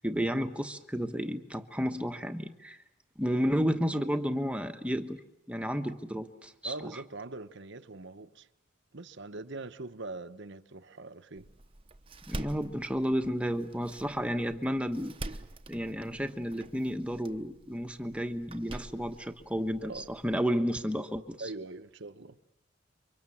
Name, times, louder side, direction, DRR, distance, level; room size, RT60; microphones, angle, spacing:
voice 1, 0.0-2.8 3.2-5.2 5.5-6.7 12.3-15.1 15.7-21.4, equal, 5° right, 1.3 m, -32 dB
voice 2, 6.6-8.5 8.9-11.5 19.8-20.1 21.4-22.4, right 3 dB, 55° right, 1.0 m, -42 dB
Door, 11.4-20.3, right 2 dB, 25° right, 1.0 m, -46 dB
29.5 x 24.5 x 7.3 m
head